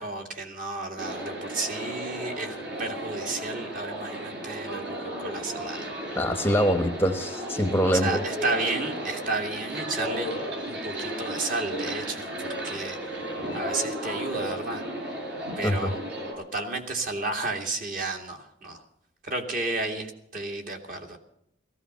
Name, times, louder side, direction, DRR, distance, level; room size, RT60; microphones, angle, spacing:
voice 1, 0.0-5.9 7.8-10.4 10.6-13.0 13.5-14.8 15.6-16.0 16.4-18.8 19.2-21.2, right 3 dB, 45° right, 3 dB, 2.4 m, -32 dB
sound 1, 1.0-16.3, right 1 dB, 65° right, 6.6 m, -34 dB
voice 2, 6.1-8.2 15.6-15.9, equal, 10° left, 7 dB, 0.9 m, -24 dB
16.0 x 15.0 x 5.6 m, 0.76 s
head